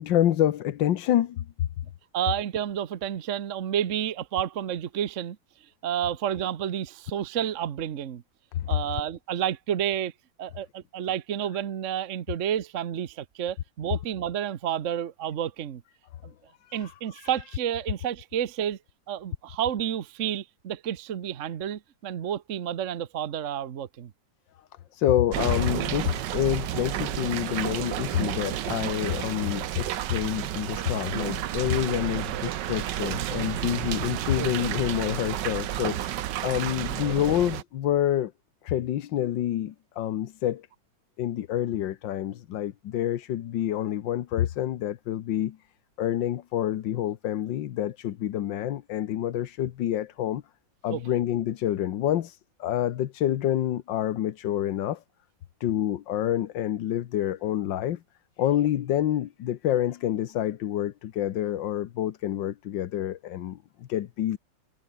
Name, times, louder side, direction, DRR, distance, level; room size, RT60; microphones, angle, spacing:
voice 1, 0.0-1.7 8.5-8.8 16.7-17.3 24.9-38.3 38.6-40.7 41.2-45.6 46.0-50.4 50.8-55.0 55.6-58.0 58.4-64.4, left 11 dB, 75° left, 1.6 m, -27 dB
voice 2, 2.1-5.4 5.8-8.2 8.7-10.1 10.4-15.8 16.2-16.3 16.7-18.8 19.1-24.1 34.4-34.7 50.9-51.0, right 10 dB, 50° right, 1.1 m, -30 dB
sound 1, 25.3-37.6, right 12 dB, 70° right, 1.5 m, -31 dB
omnidirectional pair, 2.0 m